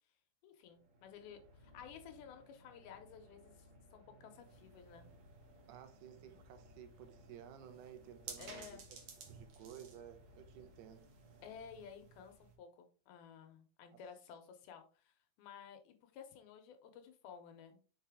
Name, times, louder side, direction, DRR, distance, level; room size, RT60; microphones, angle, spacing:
voice 1, 0.4-5.1 8.4-8.8 11.4-17.8, left 7 dB, 75° left, 2.6 m, -54 dB
sound 1, 0.6-12.5, equal, 45° right, 2.9 m, -63 dB
sound 2, 4.4-12.6, right 5 dB, 65° right, 1.7 m, -57 dB
voice 2, 5.7-8.8 9.3-11.0 13.9-14.0, right 9 dB, 85° right, 2.9 m, -54 dB
5.8 x 5.3 x 3.5 m
omnidirectional pair, 4.6 m